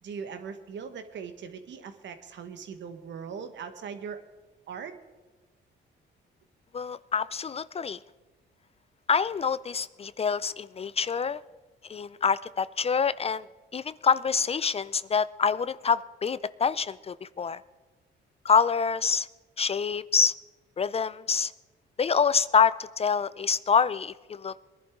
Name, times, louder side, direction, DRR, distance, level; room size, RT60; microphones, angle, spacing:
voice 1, 0.0-4.2 4.7-4.9, right 6 dB, 65° right, 8 dB, 1.4 m, -40 dB
voice 2, 6.7-8.0 9.1-11.4 11.9-13.5 13.7-17.6 18.4-19.3 19.6-20.3 20.8-21.5 22.0-24.5, left 6 dB, 30° left, 17 dB, 0.4 m, -26 dB
21.5 x 11.0 x 3.7 m, 1.2 s
cardioid pair, 90°, 20 cm